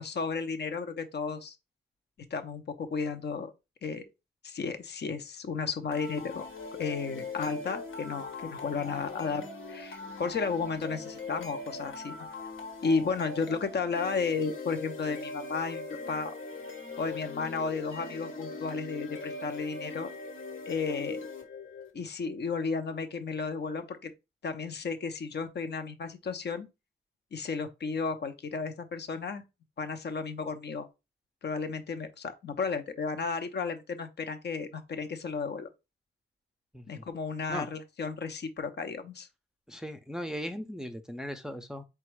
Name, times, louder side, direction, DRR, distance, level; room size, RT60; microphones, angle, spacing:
voice 1, 0.0-1.6 2.3-3.5 3.8-4.0 4.4-6.5 6.8-12.3 12.8-16.3 17.0-20.1 20.7-21.3 21.9-24.1 24.4-26.7 27.3-29.4 29.8-30.9 31.4-35.7 36.9-39.3, left 5 dB, 55° left, 0.7 m, -33 dB
sound 1, 5.9-21.9, left 3 dB, 75° left, 1.3 m, -41 dB
voice 2, 36.7-37.0 37.5-37.7 39.7-41.8, equal, 5° right, 0.5 m, -38 dB
4.0 x 2.3 x 4.6 m
cardioid pair, 95°, 21 cm